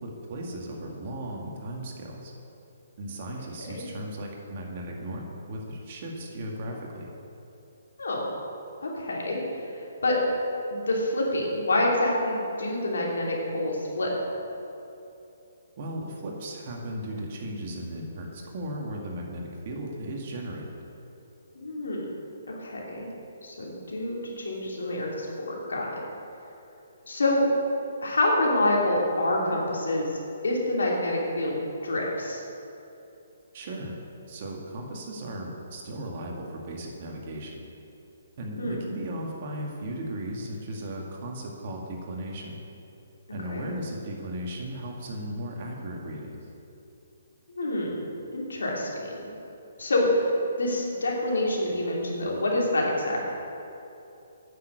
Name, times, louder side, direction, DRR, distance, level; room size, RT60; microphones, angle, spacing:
voice 1, 0.0-2.3 3.0-7.1 15.8-20.7 33.5-34.0 34.3-37.7 38.4-42.6 43.3-46.4, right 1 dB, 45° right, 0 dB, 2.1 m, -36 dB
voice 2, 8.8-9.4 10.0-10.2 10.7-14.1 21.5-22.1 22.5-23.1 23.4-26.0 27.0-27.4 28.0-30.1 30.4-32.4 38.6-38.8 43.5-43.7 47.5-48.9 49.8-53.2, left 1 dB, 80° left, -3 dB, 2.9 m, -27 dB
9.7 x 6.9 x 7.9 m, 2.8 s
hypercardioid pair, 140°, 0 cm